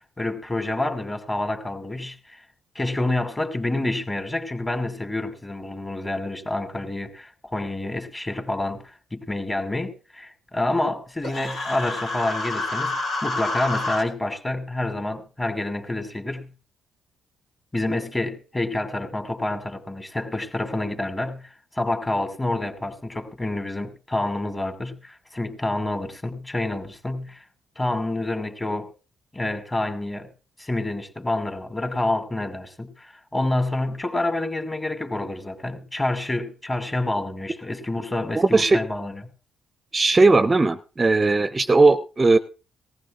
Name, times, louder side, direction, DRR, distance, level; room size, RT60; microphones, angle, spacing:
voice 1, 0.2-2.4 2.8-13.0 13.2-16.5 17.7-27.4 27.8-28.9 29.3-30.3 30.6-39.2, left 2 dB, 20° left, 2.1 m, -28 dB
Human voice, 11.2-14.0, left 2 dB, 75° left, 3.0 m, -28 dB
voice 2, 38.3-38.8 39.9-42.4, right 3 dB, 30° right, 0.5 m, -18 dB
19.0 x 15.0 x 2.4 m
supercardioid pair, 70°, 0 cm